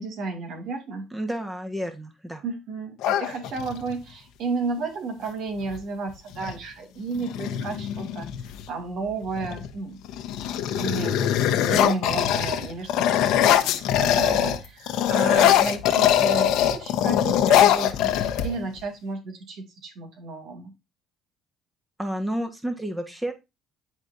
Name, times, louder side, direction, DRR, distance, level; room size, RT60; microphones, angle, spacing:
voice 1, 0.0-1.1 2.4-10.0 10.5-11.3 11.7-20.7, right 3 dB, 65° right, 4 dB, 2.5 m, -33 dB
voice 2, 1.1-2.4 22.0-23.3, right 1 dB, 10° right, 5 dB, 1.4 m, -30 dB
sound 1, 3.0-3.9 5.6-5.8 6.1-6.6 7.1-8.7 9.3-9.7 10.0-14.6 14.9-18.8, left 10 dB, 75° left, 1.1 m, -22 dB
10.5 x 4.2 x 2.7 m, 0.23 s
supercardioid pair, 90°, 0 cm